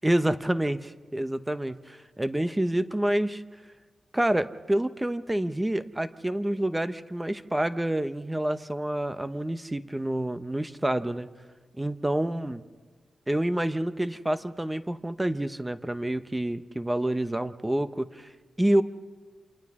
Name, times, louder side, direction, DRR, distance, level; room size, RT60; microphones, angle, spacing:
voice 1, 0.0-3.4 4.1-11.3 11.8-12.6 13.3-18.3 18.6-18.8, right 1 dB, 10° right, 11 dB, 0.8 m, -28 dB
28.5 x 27.0 x 3.7 m, 1.4 s
cardioid pair, 85°, 0 cm